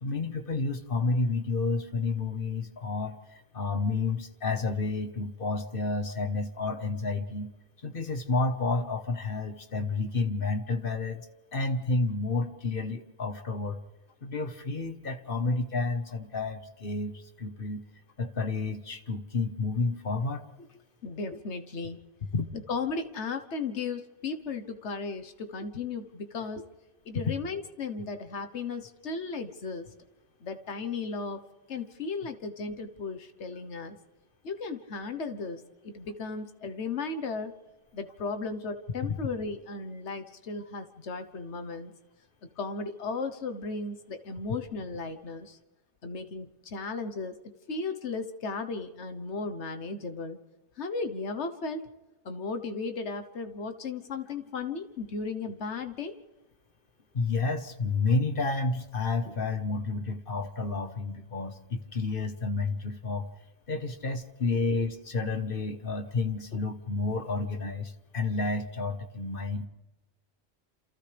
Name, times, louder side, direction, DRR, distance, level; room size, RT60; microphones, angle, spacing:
voice 1, 0.0-7.5 7.8-11.3 11.5-13.8 14.2-17.8 18.2-20.4 22.3-22.5 27.1-27.3 39.0-39.2 57.1-63.3 63.7-69.7, left 3 dB, 55° left, 7 dB, 1.5 m, -30 dB
voice 2, 21.0-22.0 22.5-26.7 27.0-29.9 30.4-31.4 31.7-34.0 34.4-37.5 37.9-41.9 42.6-45.6 46.0-47.4 47.7-50.4 50.8-51.8 52.2-56.1, left 4 dB, 85° left, 8 dB, 1.5 m, -35 dB
28.5 x 27.5 x 3.4 m, 1.1 s
omnidirectional pair, 1.1 m